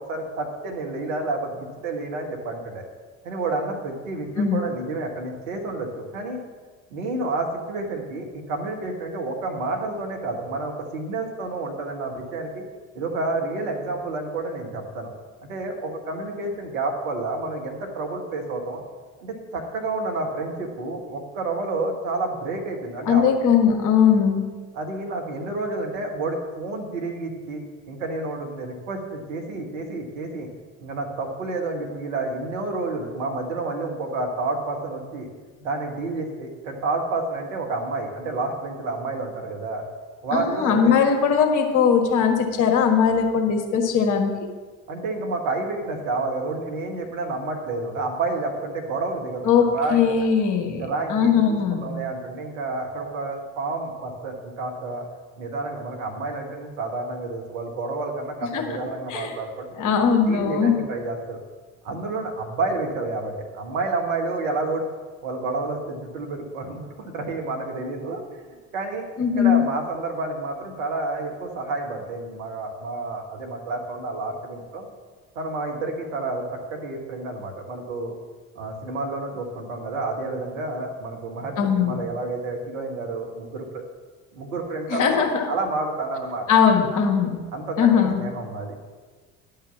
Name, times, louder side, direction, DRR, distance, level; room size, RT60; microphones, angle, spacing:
voice 1, 0.0-2.8 3.2-6.4 6.9-12.6 13.0-15.1 15.4-18.8 19.2-23.3 24.7-27.6 27.9-30.5 30.8-35.3 35.6-39.8 40.2-40.9 44.9-50.2 50.7-55.1 55.4-59.7 60.3-61.4 61.8-64.8 65.2-68.5 68.7-69.0 69.4-74.9 75.4-78.1 78.6-83.8 84.3-86.5 87.5-88.7, right 3 dB, 70° right, 1 dB, 1.7 m, -29 dB
voice 2, 23.1-24.5 40.3-44.3 49.5-50.8 51.1-51.9 58.5-58.8 59.1-59.3 59.8-60.8 69.2-69.7 81.6-82.0 84.9-85.5 86.5-87.4 87.8-88.2, left 7 dB, 50° left, 4 dB, 1.6 m, -20 dB
11.0 x 5.6 x 7.3 m, 1.4 s
figure-of-eight pair, 55°, 40 cm